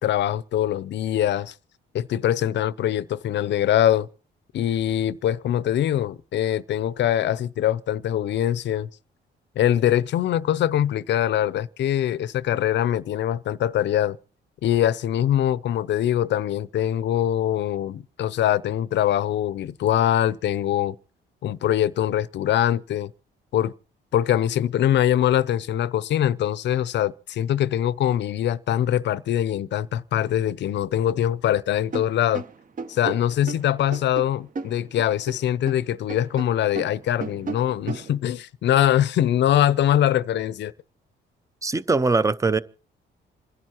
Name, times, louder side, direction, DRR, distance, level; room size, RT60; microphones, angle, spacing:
voice 1, 0.0-1.5 1.9-4.1 4.5-8.9 9.6-14.2 14.6-21.0 21.4-23.1 23.5-23.7 24.1-32.4 32.9-40.7, left 11 dB, 65° left, 0.5 m, -23 dB
sound 1, 31.9-35.8 36.1-38.1, right 4 dB, 45° right, 0.9 m, -35 dB
voice 2, 41.6-42.6, right 3 dB, 15° right, 0.5 m, -21 dB
27.5 x 11.0 x 2.9 m
cardioid pair, 90°, 20 cm